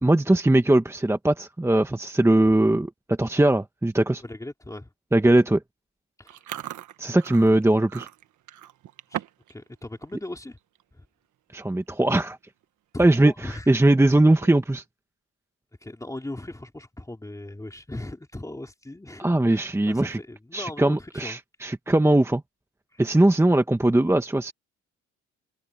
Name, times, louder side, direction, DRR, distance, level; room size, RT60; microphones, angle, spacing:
voice 1, 0.0-4.2 5.1-5.6 7.0-8.1 11.5-12.4 13.0-14.8 19.2-20.2 20.5-22.4 23.0-24.5, right 1 dB, 10° right, 1.3 m, -20 dB
voice 2, 4.2-4.9 6.2-6.4 9.1-9.2 9.5-10.6 10.9-11.1 12.9-13.7 15.8-21.4 22.9-23.0, left 1 dB, 10° left, 3.2 m, -38 dB
Chewing mastication, 6.3-9.5 9.8-10.1 10.6-10.8 11.6-11.7 11.9-12.2 12.6-12.7 14.2-14.8, right 12 dB, 75° right, 1.5 m, -38 dB
open air
cardioid pair, 90°, 30 cm